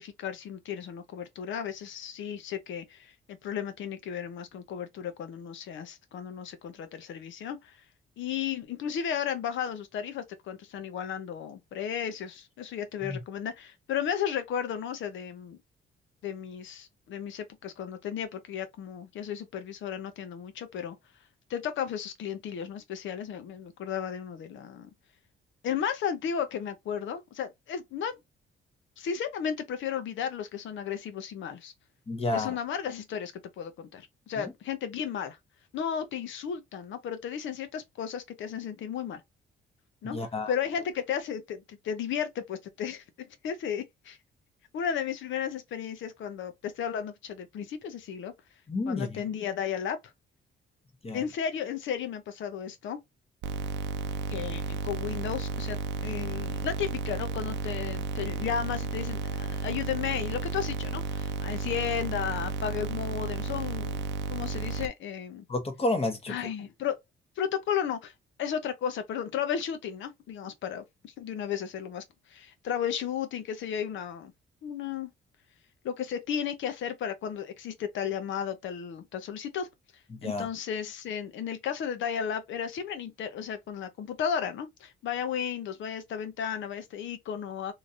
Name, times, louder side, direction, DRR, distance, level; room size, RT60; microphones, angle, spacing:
voice 1, 0.0-3.1 3.4-7.7 8.2-15.6 16.2-21.0 21.5-24.9 25.6-28.1 29.0-31.7 32.3-35.4 35.7-39.2 40.0-40.2 40.5-44.2 44.7-48.3 48.9-50.0 51.1-53.0 54.3-64.0 64.3-65.4 66.3-67.0 67.4-68.1 68.4-72.0 72.3-74.3 74.6-75.1 75.8-79.7 80.2-87.7, left 8 dB, 75° left, 0.8 m, -34 dB
voice 2, 32.1-32.5 34.4-34.5 40.0-40.5 48.7-49.2 51.0-51.2 65.5-66.3 80.1-80.5, left 2 dB, 30° left, 1.2 m, -30 dB
sound 1, 53.4-64.9, right 4 dB, 65° right, 0.6 m, -33 dB
3.1 x 2.8 x 2.5 m
cardioid pair, 90°, 20 cm